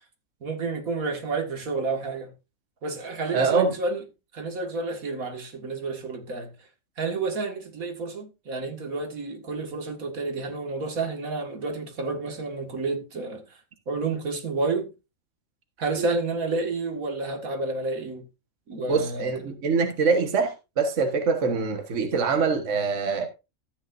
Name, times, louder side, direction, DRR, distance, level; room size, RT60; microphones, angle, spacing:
voice 1, 0.4-2.3 2.8-4.0 4.3-6.5 7.0-13.6 13.9-14.9 15.8-18.3 18.7-19.6, right 3 dB, 85° right, 2.2 m, -30 dB
voice 2, 3.3-3.7 16.0-16.1 18.9-23.3, right 4 dB, 60° right, 1.6 m, -24 dB
13.5 x 9.0 x 2.5 m
omnidirectional pair, 1.4 m